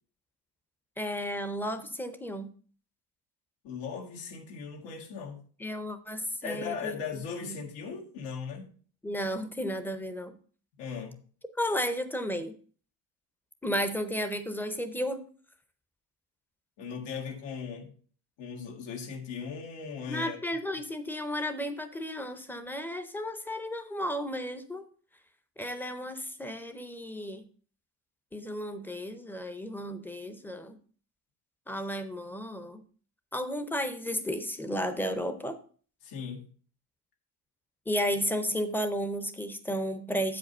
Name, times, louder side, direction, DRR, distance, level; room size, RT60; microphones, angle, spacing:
voice 1, 1.0-2.5 5.6-7.0 7.4-7.6 9.0-10.4 11.6-12.6 13.6-15.2 20.1-24.9 25.6-27.4 28.3-30.8 31.7-32.8 33.3-35.6 37.9-40.4, equal, 5° left, 0.5 m, -33 dB
voice 2, 3.6-5.4 6.4-8.7 10.8-11.2 16.8-17.9 18.4-20.4 36.0-36.5, left 5 dB, 90° left, 2.0 m, -38 dB
8.1 x 5.1 x 5.3 m
cardioid pair, 155°, 40 cm